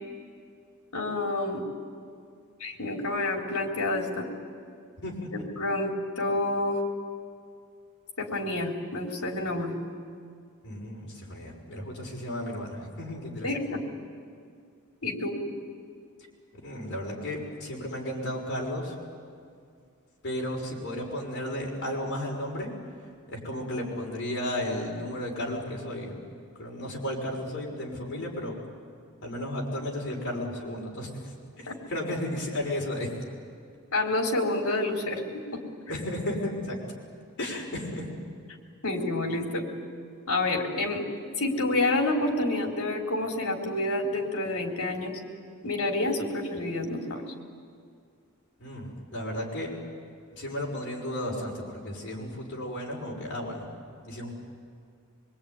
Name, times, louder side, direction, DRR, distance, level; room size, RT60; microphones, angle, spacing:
voice 1, 0.9-1.6 2.6-4.3 5.6-6.8 8.2-9.7 13.4-13.8 15.0-15.4 31.7-31.8 33.9-35.6 38.8-39.7 40.3-41.0 41.4-45.2 45.6-47.2, left 2 dB, 75° left, 2 dB, 3.9 m, -28 dB
voice 2, 10.6-13.5 16.6-18.9 20.2-22.7 23.3-26.2 26.6-28.6 29.2-31.3 31.6-33.1 35.9-36.8 37.4-38.1 48.6-49.7 50.3-53.7 54.0-54.3, left 1 dB, 55° left, -1 dB, 6.0 m, -34 dB
24.0 x 24.0 x 9.7 m, 2.2 s
head